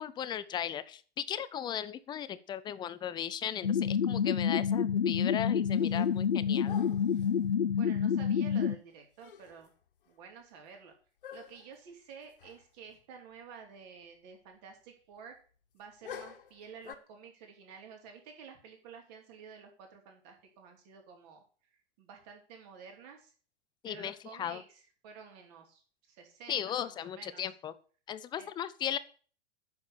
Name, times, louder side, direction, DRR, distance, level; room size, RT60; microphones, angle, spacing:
voice 1, 0.0-6.8 23.8-24.6 26.5-27.7 28.1-29.0, left 10 dB, 15° left, 15 dB, 0.6 m, -37 dB
sound 1, 3.6-8.7, left 7 dB, 75° left, 0.7 m, -28 dB
Impatient whimpers and barks, 5.7-6.3 6.6-7.4 8.9-9.0 9.2-9.7 10.0-10.1 11.2-11.8 12.4-12.6 12.9-13.0 16.0-16.9, left 8 dB, 60° left, 1.7 m, -48 dB
voice 2, 7.8-9.7 10.1-10.9 11.3-15.4 15.7-23.3 23.9-27.5 28.3-28.5, right 6 dB, 40° right, 3 dB, 4.2 m, -51 dB
9.5 x 7.1 x 8.6 m, 0.42 s
figure-of-eight pair, 100°, 31 cm